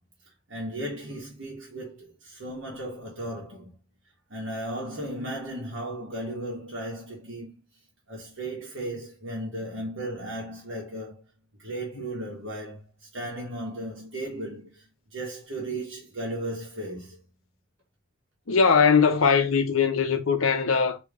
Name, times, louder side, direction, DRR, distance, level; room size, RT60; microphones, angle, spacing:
voice 1, 0.5-3.7 4.3-7.5 8.1-11.2 11.6-17.2, right 1 dB, 65° right, 1.2 m, -35 dB
voice 2, 18.5-21.0, left 5 dB, 80° left, 0.8 m, -21 dB
3.4 x 3.0 x 3.6 m
head